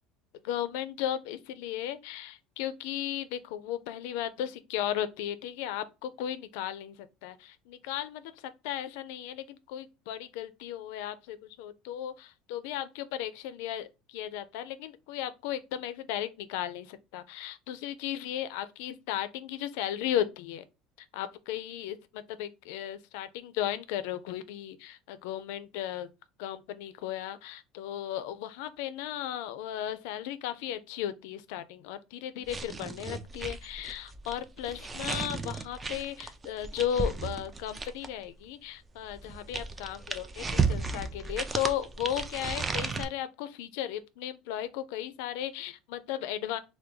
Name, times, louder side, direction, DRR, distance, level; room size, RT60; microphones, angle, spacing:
voice 1, 0.4-7.0 7.2-20.6 21.1-26.1 26.4-46.6, left 11 dB, 85° left, 0.4 m, -35 dB
sound 1, 32.4-38.2 39.1-43.1, right 4 dB, 20° right, 0.3 m, -34 dB
3.4 x 2.2 x 3.0 m
cardioid pair, 140°, 0 cm